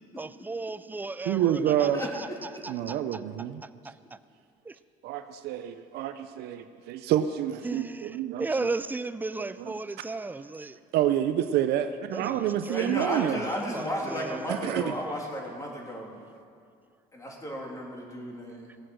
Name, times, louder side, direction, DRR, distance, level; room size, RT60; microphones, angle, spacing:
voice 1, 0.2-3.2 3.6-4.2 4.6-4.8 7.6-10.8 12.1-15.3, right 3 dB, 10° right, 14 dB, 0.4 m, -36 dB
voice 2, 1.3-2.0 2.7-3.6 5.0-8.4 10.9-13.4 14.5-14.9, right 11 dB, 70° right, 9 dB, 0.6 m, -28 dB
voice 3, 1.9-2.6 12.7-16.3 17.1-18.8, equal, 20° left, -1 dB, 3.0 m, -34 dB
17.0 x 7.7 x 6.3 m, 2.3 s
cardioid pair, 100°, 17 cm